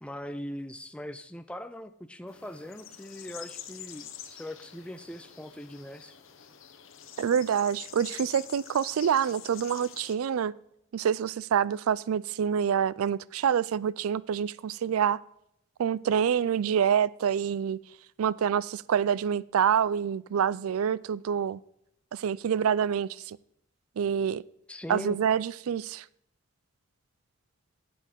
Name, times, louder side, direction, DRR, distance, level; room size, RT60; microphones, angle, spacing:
voice 1, 0.0-6.1 24.7-25.2, left 1 dB, 5° left, 0.5 m, -40 dB
sound 1, 2.3-10.1, left 10 dB, 70° left, 1.0 m, -46 dB
voice 2, 7.2-10.5 10.9-15.2 15.8-17.8 18.2-21.6 22.1-23.4 24.0-24.4 24.9-26.0, right 8 dB, 90° right, 0.4 m, -27 dB
8.8 x 7.8 x 6.4 m
head